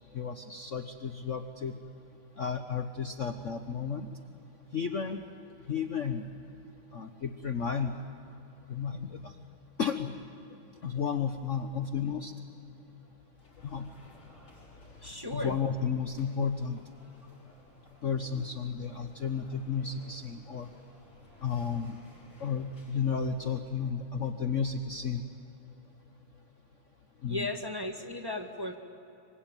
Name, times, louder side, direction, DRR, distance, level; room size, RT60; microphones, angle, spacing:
voice 1, 0.1-1.7 2.4-4.1 4.7-5.2 5.7-6.3 6.9-7.9 8.7-9.3 9.8-10.1 10.8-12.3 13.6-13.9 15.3-16.8 18.0-20.7 21.4-21.9 22.4-25.2 27.2-27.5, left 6 dB, 45° left, 7 dB, 1.1 m, -32 dB
sound 1, 13.3-24.0, left 1 dB, 80° left, 8.2 m, -58 dB
voice 2, 15.0-15.6 27.3-28.8, left 1 dB, 10° right, 3 dB, 1.6 m, -35 dB
26.0 x 24.5 x 9.1 m, 3.0 s
omnidirectional pair, 2.3 m